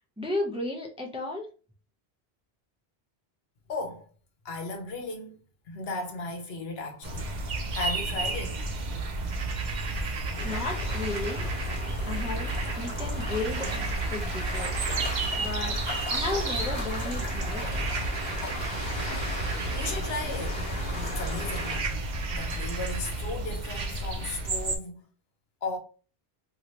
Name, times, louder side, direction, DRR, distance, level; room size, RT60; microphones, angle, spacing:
voice 1, 0.2-1.5 10.4-11.5 12.0-12.5 12.8-13.8 14.1-14.8 15.4-15.8 16.1-17.9, left 2 dB, 10° right, 0.4 m, -34 dB
voice 2, 3.7-4.1 4.4-5.4 5.7-8.6 19.7-20.6 21.0-21.8 22.3-25.0 25.6-25.8, left 3 dB, 75° left, 1.0 m, -36 dB
sound 1, 7.0-24.8, right 2 dB, 50° right, 0.7 m, -31 dB
sound 2, 10.3-21.8, left 1 dB, 25° right, 1.0 m, -37 dB
2.8 x 2.7 x 3.0 m
omnidirectional pair, 1.1 m